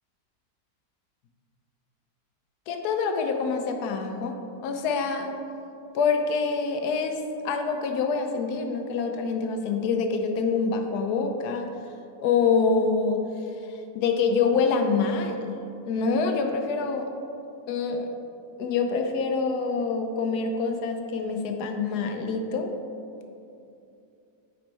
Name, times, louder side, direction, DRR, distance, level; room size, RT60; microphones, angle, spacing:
voice 1, 2.7-4.4 4.6-5.3 5.9-11.7 12.2-13.2 13.7-15.5 15.8-17.1 17.7-18.1 18.6-22.7, left 5 dB, 85° left, 5 dB, 1.2 m, -26 dB
8.6 x 3.1 x 4.4 m, 2.6 s
omnidirectional pair, 1.7 m